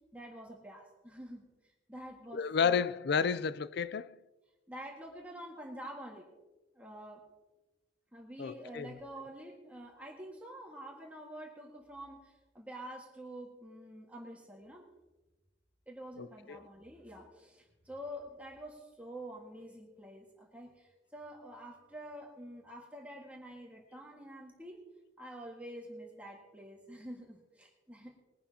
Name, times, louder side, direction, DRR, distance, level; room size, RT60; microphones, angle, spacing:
voice 1, 0.1-2.9 3.2-3.4 4.7-6.3 6.7-7.2 8.1-14.8 15.9-24.8 25.2-28.1, equal, 10° right, 1.7 m, -47 dB
voice 2, 2.3-4.2 8.4-8.9 16.2-16.6, left 6 dB, 60° left, 0.4 m, -31 dB
21.0 x 11.0 x 2.9 m
head